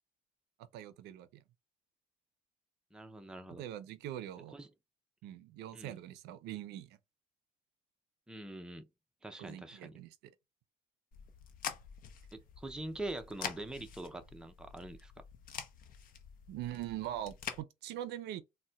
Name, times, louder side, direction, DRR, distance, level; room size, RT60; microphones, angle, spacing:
voice 1, 0.7-1.4 3.5-4.6 5.2-7.0 9.4-10.3 16.5-18.4, right 12 dB, 85° right, 0.5 m, -43 dB
voice 2, 2.9-3.6 4.5-4.7 5.7-5.9 8.3-8.9 9.2-10.0 12.3-15.1, right 1 dB, 5° right, 0.4 m, -44 dB
sound 1, 11.1-17.6, left 8 dB, 55° left, 0.7 m, -46 dB
4.0 x 2.1 x 2.2 m
cardioid pair, 110°, 17 cm